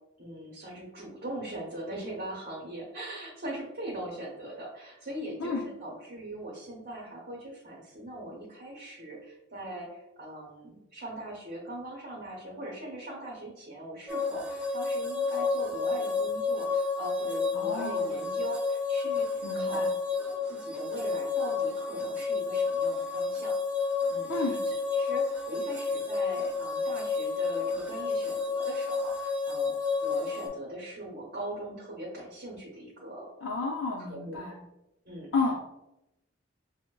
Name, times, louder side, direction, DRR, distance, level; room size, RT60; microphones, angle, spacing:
voice 1, 0.2-19.9 20.2-23.6 24.1-29.7 30.0-33.7 34.1-34.4 35.0-35.3, right 1 dB, 50° right, -6 dB, 0.9 m, -41 dB
sound 1, 14.1-30.5, left 4 dB, 5° right, 0.3 m, -30 dB
voice 2, 17.5-18.1 19.4-19.9 24.3-24.6 33.4-34.6 35.3-35.6, left 3 dB, 80° left, -4 dB, 0.6 m, -31 dB
5.7 x 2.1 x 2.2 m, 0.91 s
head